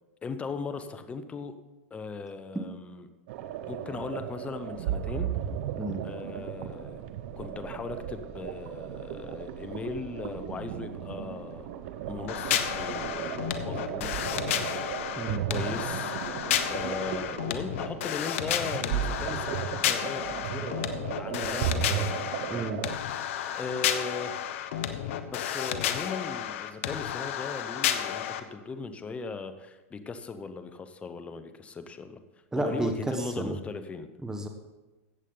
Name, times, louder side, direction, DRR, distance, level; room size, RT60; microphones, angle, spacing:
voice 1, 0.2-1.5 1.9-3.1 3.7-5.3 6.0-7.0 7.4-11.7 12.1-14.8 15.5-16.1 16.7-22.4 23.5-24.5 25.3-32.2 32.6-34.1, left 4 dB, 15° left, 9 dB, 0.8 m, -38 dB
sound 1, 3.3-23.0, right 10 dB, 60° right, 0.9 m, -35 dB
sound 2, 12.3-28.4, left 10 dB, 65° left, 0.9 m, -32 dB
voice 2, 15.2-15.5 22.5-22.8 32.5-33.6 34.2-34.5, right 2 dB, 5° right, 4 dB, 1.0 m, -31 dB
14.5 x 8.2 x 3.9 m, 1.1 s
hypercardioid pair, 120°, 8 cm